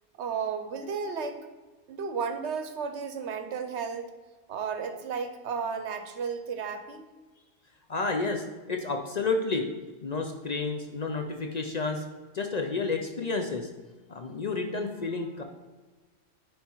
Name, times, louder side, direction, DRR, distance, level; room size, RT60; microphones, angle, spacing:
voice 1, 0.2-1.4 1.9-4.1 4.5-7.1, right 6 dB, 65° right, 8 dB, 1.0 m, -33 dB
voice 2, 7.9-9.7 10.0-12.0 12.3-13.7 14.1-15.4, left 3 dB, 50° left, 4 dB, 0.5 m, -30 dB
9.4 x 3.6 x 4.5 m, 1.3 s
omnidirectional pair, 1.4 m